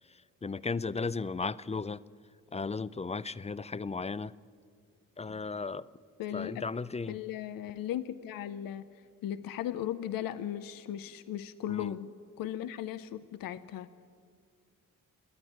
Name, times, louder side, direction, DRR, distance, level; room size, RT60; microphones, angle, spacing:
voice 1, 0.1-2.0 2.5-4.3 5.2-5.9 6.3-7.2 11.7-11.9, left 4 dB, 20° left, 18 dB, 0.5 m, -35 dB
voice 2, 6.2-6.7 7.1-8.9 9.2-13.9, left 11 dB, 85° left, 12 dB, 0.7 m, -37 dB
28.5 x 9.8 x 9.4 m, 2.1 s
cardioid pair, 60°, 33 cm